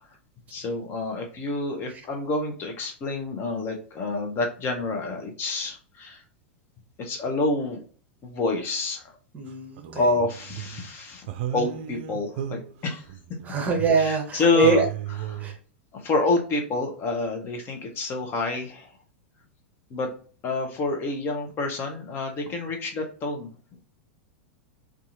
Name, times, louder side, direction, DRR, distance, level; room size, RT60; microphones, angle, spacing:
voice 1, 0.5-6.2 7.0-7.8 8.2-9.0 10.0-11.3 11.5-13.0 14.0-14.8 15.3-15.5 15.9-18.9 19.9-20.1 20.4-23.5, left 3 dB, 35° left, 3 dB, 0.7 m, -28 dB
voice 2, 9.3-10.0 13.4-14.9 15.4-15.5, right 4 dB, 25° right, 2 dB, 0.8 m, -23 dB
sound 1, 9.5-10.9 11.3-14.4 14.6-15.6, right 10 dB, 60° right, 0.4 m, -35 dB
2.7 x 2.4 x 2.5 m, 0.40 s
hypercardioid pair, 100°, 6 cm